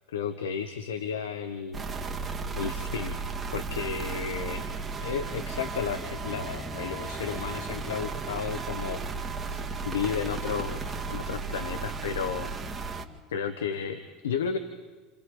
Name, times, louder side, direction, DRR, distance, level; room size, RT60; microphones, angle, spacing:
voice 1, 0.1-1.8 2.6-3.2 3.5-4.6 5.0-9.6 9.8-12.5 13.3-14.6, left 7 dB, 85° left, 9 dB, 1.0 m, -33 dB
sound 1, 1.7-13.1, right 4 dB, 25° right, 2.0 m, -34 dB
29.0 x 27.0 x 3.9 m, 1.3 s
hypercardioid pair, 75°, 0 cm